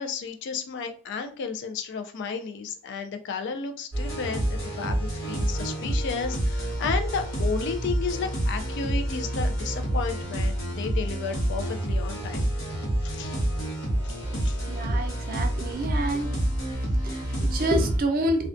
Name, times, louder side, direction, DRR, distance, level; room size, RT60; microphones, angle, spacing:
voice 1, 0.0-12.4 13.0-13.4 14.0-14.2 14.4-14.6, left 5 dB, 55° left, 7 dB, 0.3 m, -33 dB
sound 1, 3.9-18.0, right 1 dB, 90° left, 1.0 m, -28 dB
voice 2, 14.7-16.3 17.0-18.5, right 1 dB, 45° right, 4 dB, 0.4 m, -28 dB
2.3 x 2.2 x 2.4 m, 0.40 s
head